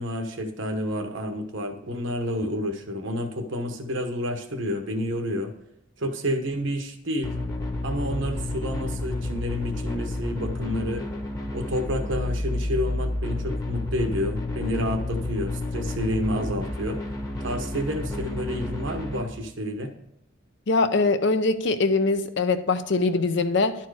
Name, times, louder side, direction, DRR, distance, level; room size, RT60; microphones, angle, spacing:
voice 1, 0.0-5.5 6.0-7.3 7.8-11.0 11.5-17.0 17.4-19.9, equal, 70° right, 6 dB, 1.0 m, -29 dB
sound 1, 7.2-19.2, left 2 dB, 20° left, 1.0 m, -30 dB
voice 2, 20.7-23.8, left 3 dB, 60° left, 10 dB, 0.6 m, -22 dB
11.0 x 4.5 x 4.8 m, 0.77 s
head